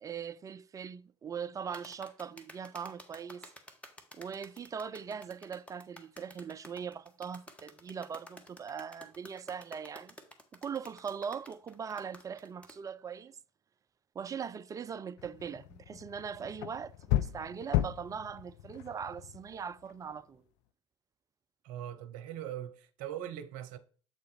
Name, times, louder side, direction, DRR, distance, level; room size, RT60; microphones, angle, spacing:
voice 1, 0.0-3.5 4.1-10.2 10.6-13.4 14.1-20.4, right 7 dB, 20° right, 0.3 m, -41 dB
sound 1, 1.7-12.8, left 1 dB, 10° left, 1.1 m, -52 dB
sound 2, 15.2-20.0, left 13 dB, 65° left, 0.4 m, -35 dB
voice 2, 21.6-23.8, right 11 dB, 55° right, 0.8 m, -41 dB
7.8 x 3.8 x 4.1 m
figure-of-eight pair, 70°, 16 cm